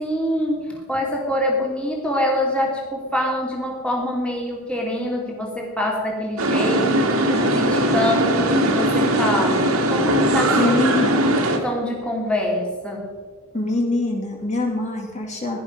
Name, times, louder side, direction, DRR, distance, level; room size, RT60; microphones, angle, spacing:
voice 1, 0.0-10.7 11.6-13.2, left 1 dB, 5° left, -1 dB, 2.6 m, -25 dB
sound 1, 6.4-11.6, right 1 dB, 75° right, 2.2 m, -19 dB
voice 2, 10.6-11.3 13.5-15.6, left 2 dB, 35° left, 0 dB, 2.5 m, -23 dB
17.0 x 11.5 x 5.3 m, 1.5 s
head